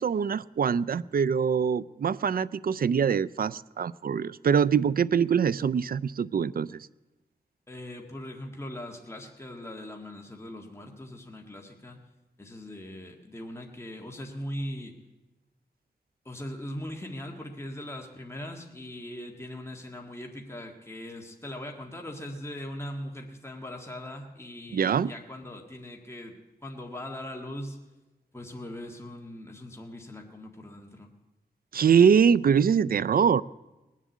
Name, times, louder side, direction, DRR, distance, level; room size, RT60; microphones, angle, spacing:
voice 1, 0.0-6.9 24.7-25.1 31.7-33.4, right 7 dB, 60° right, 0.4 m, -23 dB
voice 2, 7.7-12.0 12.4-14.9 16.3-27.8 28.3-31.1, left 1 dB, 15° left, 1.8 m, -40 dB
19.5 x 7.4 x 8.3 m
wide cardioid pair, 70°, 17 cm